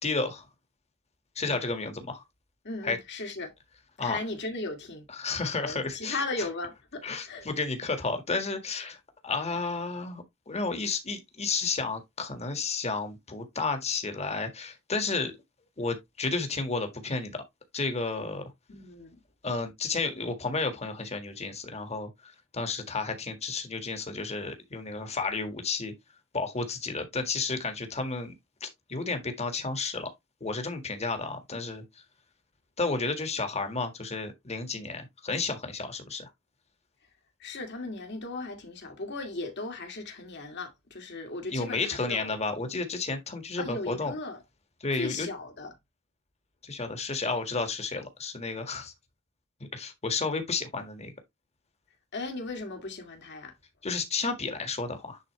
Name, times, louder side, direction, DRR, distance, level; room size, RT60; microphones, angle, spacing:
voice 1, 0.0-0.5 1.3-2.2 2.8-3.0 4.0-4.2 5.1-6.5 7.0-15.3 15.8-17.4 17.7-18.5 19.4-25.9 26.3-28.3 28.6-30.1 30.4-31.8 32.8-36.3 41.5-44.1 44.8-45.3 46.6-48.9 49.7-51.1 53.8-55.2, left 3 dB, 30° left, 1.7 m, -32 dB
voice 2, 2.6-3.5 4.0-5.1 5.6-7.5 18.7-19.2 37.4-42.3 43.6-44.4 45.0-45.7 52.1-53.5, left 3 dB, 55° left, 2.2 m, -37 dB
10.0 x 4.2 x 3.2 m
head